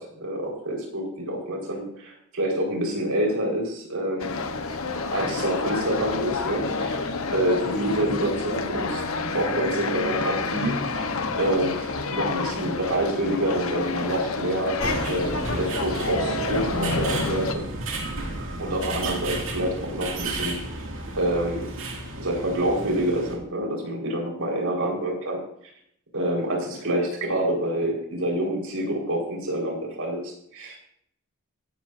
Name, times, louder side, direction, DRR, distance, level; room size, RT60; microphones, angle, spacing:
voice 1, 0.0-4.4 5.1-9.0 9.3-14.8 15.1-17.6 18.6-20.8 21.1-21.7 22.2-25.4 26.1-30.8, right 1 dB, 85° right, -1 dB, 5.1 m, -27 dB
sound 1, 4.2-17.5, left 3 dB, 80° left, 1.2 m, -29 dB
sound 2, 14.8-23.4, right 2 dB, 65° right, 2.5 m, -32 dB
15.5 x 12.5 x 2.8 m, 0.70 s
head